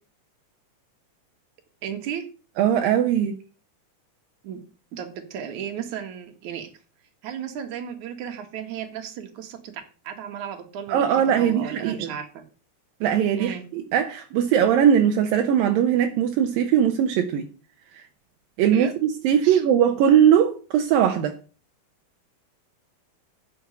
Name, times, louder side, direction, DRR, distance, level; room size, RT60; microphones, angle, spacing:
voice 1, 1.8-2.2 4.4-4.6 4.9-6.7 7.2-9.7 10.0-12.4 13.4-13.6 18.7-18.9 19.4-19.6, right 8 dB, 60° right, 2.9 m, -34 dB
voice 2, 2.6-3.4 10.9-12.1 13.0-13.5 13.9-17.5 18.6-21.4, right 9 dB, 80° right, 2.7 m, -20 dB
10.5 x 6.4 x 8.1 m
omnidirectional pair, 4.2 m